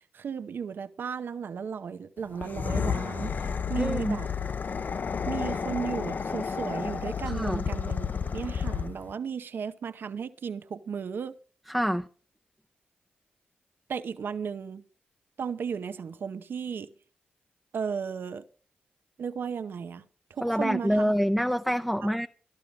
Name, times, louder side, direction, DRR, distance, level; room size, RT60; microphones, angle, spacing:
voice 1, 0.0-3.3 3.7-4.3 5.3-8.1 8.3-11.3 13.9-14.8 15.4-16.9 17.7-18.4 19.2-20.0 20.3-21.1, right 6 dB, 70° right, 0.8 m, -35 dB
sound 1, 2.3-9.1, left 6 dB, 55° left, 0.7 m, -31 dB
voice 2, 3.8-4.2 7.3-7.6 11.7-12.1 20.4-22.3, equal, ahead, 0.7 m, -26 dB
13.5 x 12.0 x 5.2 m
cardioid pair, 50°, 4 cm